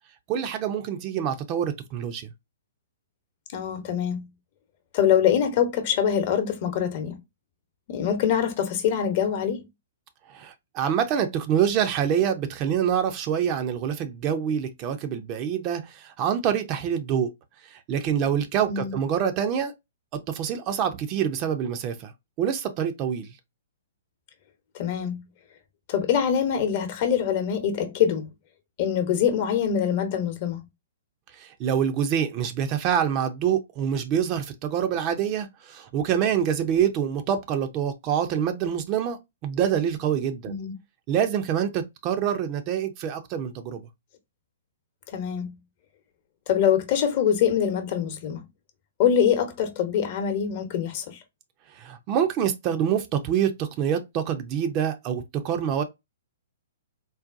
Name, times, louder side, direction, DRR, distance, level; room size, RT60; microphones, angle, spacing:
voice 1, 0.3-2.3 10.3-17.3 17.7-19.7 20.1-22.1 22.4-23.3 31.4-40.5 41.1-43.8 51.8-55.8, right 8 dB, 35° right, 0.5 m, -26 dB
voice 2, 3.5-4.3 4.9-7.2 7.9-9.7 18.7-18.9 24.7-25.2 25.9-28.3 28.8-30.6 40.5-40.7 45.1-45.5 46.5-48.4 49.0-51.2, left 8 dB, 45° left, 0.9 m, -24 dB
3.9 x 2.2 x 2.5 m
figure-of-eight pair, 115°, 0 cm